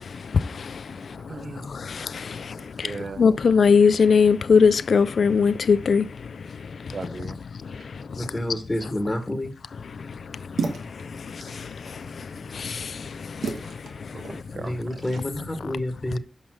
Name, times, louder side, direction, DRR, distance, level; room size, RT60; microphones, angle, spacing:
voice 1, 1.3-1.7 2.6-3.2 6.9-7.4 7.8-7.9 14.1-15.1, right 4 dB, 55° right, 0.8 m, -38 dB
voice 2, 1.9-2.2 2.8-2.9 3.2-6.1 12.5-12.9, left 5 dB, 70° left, 0.4 m, -18 dB
voice 3, 8.2-9.5 14.5-16.2, left 1 dB, 15° left, 1.4 m, -28 dB
sound 1, 10.1-15.2, right 4 dB, 90° right, 1.3 m, -36 dB
6.2 x 5.3 x 6.2 m
cardioid pair, 60°, 0 cm